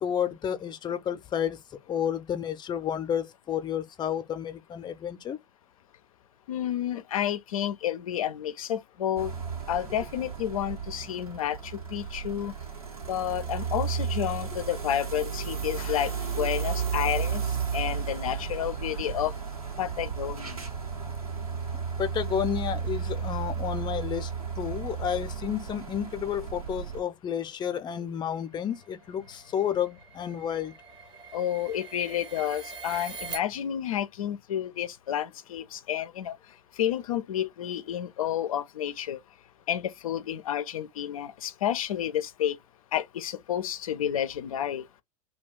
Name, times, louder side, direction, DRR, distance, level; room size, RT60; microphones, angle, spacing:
voice 1, 0.0-5.4 22.0-24.3 24.6-30.7, left 9 dB, 25° left, 0.6 m, -31 dB
voice 2, 6.5-9.3 9.7-12.5 13.1-19.3 19.8-20.6 31.3-36.4 36.8-39.2 39.7-42.6 42.9-44.9, left 10 dB, 70° left, 0.4 m, -30 dB
sound 1, 9.2-27.0, right 6 dB, 85° right, 1.0 m, -33 dB
sound 2, 28.6-33.4, right 5 dB, 25° right, 0.7 m, -43 dB
2.3 x 2.3 x 3.5 m
figure-of-eight pair, 85°, 18 cm